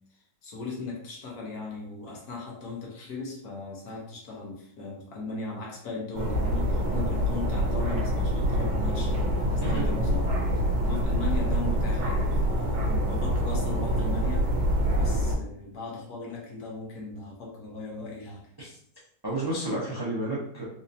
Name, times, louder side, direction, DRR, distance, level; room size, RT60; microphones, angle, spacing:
voice 1, 0.4-14.5 15.0-18.5, left 3 dB, 65° left, -1 dB, 1.3 m, -38 dB
sound 1, 6.1-15.4, equal, 75° right, 1.2 m, -26 dB
voice 2, 19.2-20.6, right 1 dB, 35° right, -5 dB, 0.3 m, -31 dB
4.1 x 2.7 x 2.6 m, 0.65 s
omnidirectional pair, 1.9 m